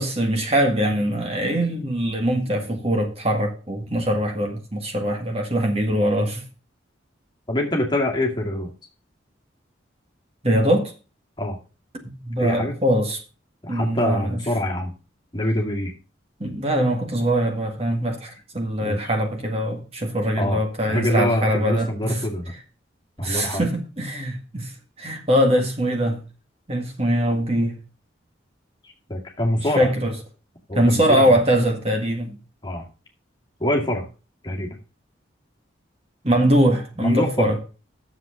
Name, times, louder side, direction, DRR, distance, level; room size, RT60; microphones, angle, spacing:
voice 1, 0.0-6.4 10.4-10.9 12.2-13.2 13.7-14.4 16.4-18.3 18.5-22.2 23.2-24.7 25.0-26.2 26.7-27.8 29.8-30.1 30.8-32.4 36.2-37.6, equal, 30° right, 1.8 m, -22 dB
voice 2, 7.5-8.7 11.4-11.6 12.4-12.8 13.6-14.9 15.3-15.9 18.8-19.0 20.4-20.6 20.9-22.5 23.2-23.6 28.8-29.9 30.7-31.4 32.6-32.9 33.6-34.0 34.4-34.8 37.0-37.5, left 1 dB, 20° left, 2.2 m, -25 dB
9.8 x 7.3 x 5.0 m
head